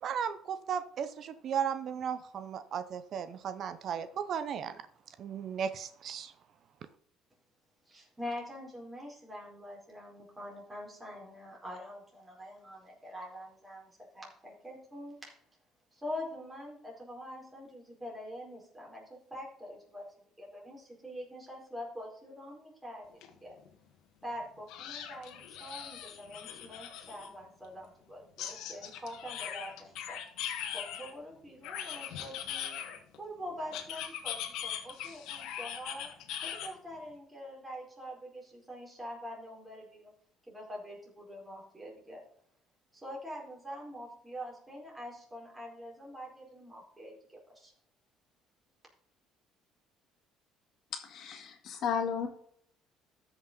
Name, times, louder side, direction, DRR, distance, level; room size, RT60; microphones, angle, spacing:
voice 1, 0.0-4.9 5.2-6.3, right 7 dB, 50° right, 13 dB, 0.7 m, -35 dB
voice 2, 7.9-15.3 15.9-20.1 20.4-23.5 24.2-30.2 30.7-32.8 33.2-36.1 36.4-40.1 40.5-42.2 42.9-47.7, equal, 15° right, -3 dB, 4.6 m, -45 dB
sound 1, 23.2-23.3 23.7-23.8 24.7-27.3 28.4-31.1 31.6-33.2 33.7-36.7, left 10 dB, 75° left, 1.5 m, -40 dB
voice 3, 51.0-52.3, left 7 dB, 55° left, 4 dB, 1.9 m, -33 dB
13.5 x 6.0 x 3.9 m, 0.66 s
cardioid pair, 120°, 0 cm